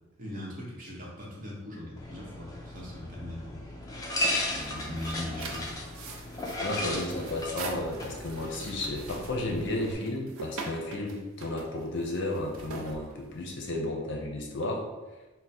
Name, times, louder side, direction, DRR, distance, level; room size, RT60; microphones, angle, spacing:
voice 1, 0.2-3.6 4.5-5.7, left 1 dB, 40° right, -5 dB, 1.0 m, -40 dB
sound 1, 2.0-9.9, left 1 dB, 15° left, 0.4 m, -36 dB
sound 2, 4.5-13.7, right 3 dB, 70° right, 0.5 m, -43 dB
voice 2, 6.6-14.8, left 1 dB, 55° left, 0 dB, 0.6 m, -33 dB
3.5 x 2.1 x 4.2 m, 1.1 s
head